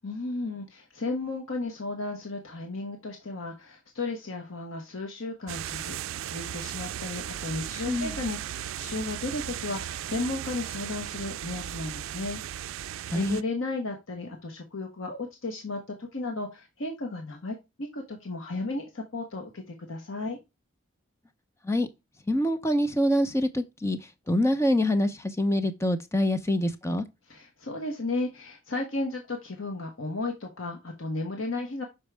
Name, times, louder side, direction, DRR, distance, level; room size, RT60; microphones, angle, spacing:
voice 1, 0.0-6.0 6.2-12.4 12.8-20.4 27.3-31.8, left 2 dB, 75° left, 1.1 m, -34 dB
sound 1, 5.5-13.4, right 11 dB, 75° right, 0.3 m, -36 dB
voice 2, 22.3-24.0 24.3-27.0, left 1 dB, 15° left, 0.6 m, -25 dB
6.2 x 4.6 x 3.3 m
head